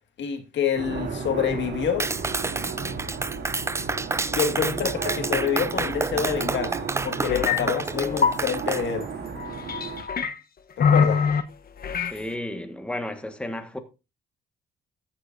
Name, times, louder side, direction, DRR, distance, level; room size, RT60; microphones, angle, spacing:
voice 1, 0.2-2.1 4.3-9.1 10.8-11.2, left 7 dB, 65° left, 1.9 m, -27 dB
sound 1, 0.7-10.0, right 5 dB, 60° right, 2.6 m, -34 dB
Clapping, 2.0-8.8, right 3 dB, 15° right, 0.5 m, -29 dB
sound 2, 7.3-7.6 7.9-8.4 9.4-10.3 10.8-11.4 11.8-12.2, left 6 dB, 50° left, 1.0 m, -23 dB
voice 2, 12.1-13.8, left 1 dB, 5° left, 1.6 m, -33 dB
14.0 x 8.6 x 2.6 m
cardioid pair, 90°, 20 cm